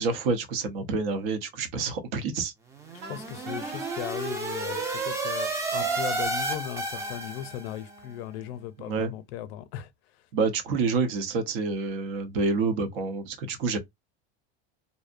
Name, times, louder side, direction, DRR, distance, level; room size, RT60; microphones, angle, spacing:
voice 1, 0.0-2.5 8.8-9.1 10.3-13.8, right 4 dB, 75° right, 0.8 m, -28 dB
sound 1, 2.7-7.8, right 3 dB, 10° right, 0.3 m, -31 dB
Wind instrument woodwind instrument, 3.0-4.1 4.7-5.1 5.8-8.8, right 4 dB, 35° right, 0.7 m, -44 dB
voice 2, 3.1-10.2, left 11 dB, 90° left, 0.5 m, -37 dB
2.6 x 2.0 x 2.4 m
supercardioid pair, 150°, 30 cm